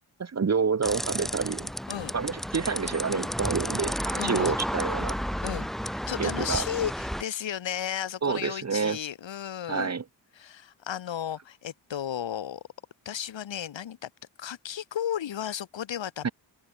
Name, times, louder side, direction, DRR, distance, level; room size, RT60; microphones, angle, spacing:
voice 1, 0.2-1.7 2.1-5.2 6.2-6.7 8.2-9.0 9.7-10.0 16.2-16.3, right 5 dB, 35° right, 1.3 m, -28 dB
sound 1, 0.8-7.2, equal, ahead, 1.3 m, -32 dB
voice 2, 4.2-4.5 5.4-9.9 10.4-12.6 13.0-14.1 14.4-16.3, left 10 dB, 70° left, 2.7 m, -34 dB
open air
cardioid pair, 60°, 46 cm